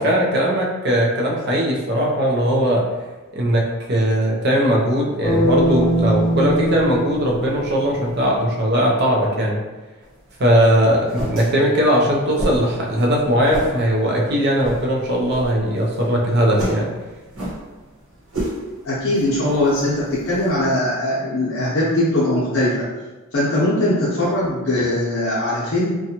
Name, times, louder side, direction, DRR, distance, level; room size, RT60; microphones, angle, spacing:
voice 1, 0.0-2.8 3.3-3.6 3.9-9.6 10.4-16.9, equal, 50° right, -2 dB, 0.5 m, -19 dB
sound 1, 5.2-8.2, equal, 25° left, 0.8 m, -21 dB
sound 2, 10.0-20.7, right 1 dB, 75° right, 1.0 m, -32 dB
voice 2, 18.8-22.7 23.3-25.9, left 1 dB, 65° left, -8 dB, 0.7 m, -20 dB
2.6 x 2.2 x 2.8 m, 1.2 s
head